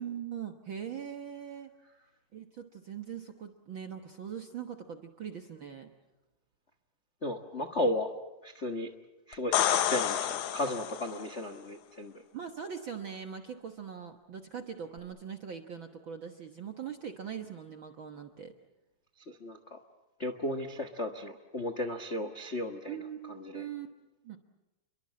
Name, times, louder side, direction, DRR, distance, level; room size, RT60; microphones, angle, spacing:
voice 1, 0.0-1.7 2.3-5.9 12.3-18.5 22.9-23.9 24.2-24.4, right 8 dB, 65° right, 5 dB, 1.2 m, -41 dB
voice 2, 7.2-8.1 8.4-8.9 9.3-12.2 19.3-19.8 20.2-23.0 23.3-23.7, left 1 dB, 85° left, 8 dB, 0.6 m, -35 dB
sound 1, 9.3-11.3 15.0-15.1, left 11 dB, 70° left, 2.2 m, -29 dB
29.5 x 23.0 x 7.6 m, 1.0 s
omnidirectional pair, 4.0 m